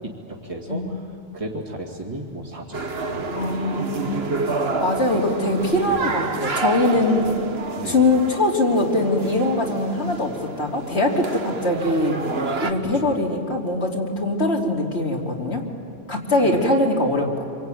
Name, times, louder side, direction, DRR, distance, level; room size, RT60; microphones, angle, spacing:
voice 1, 0.3-0.8 1.3-2.8 3.2-3.5 5.9-6.1 7.1-7.2 7.8-8.0 12.9-13.1 16.4-16.5, right 1 dB, 30° right, -2 dB, 2.4 m, -34 dB
sound 1, 2.7-12.7, right 4 dB, 65° right, 1.6 m, -29 dB
voice 2, 3.3-4.2 4.8-7.3 7.9-12.2 12.6-15.6 16.1-17.4, left 2 dB, 75° left, 0 dB, 3.4 m, -22 dB
27.0 x 23.5 x 9.2 m, 2.4 s
omnidirectional pair, 1.1 m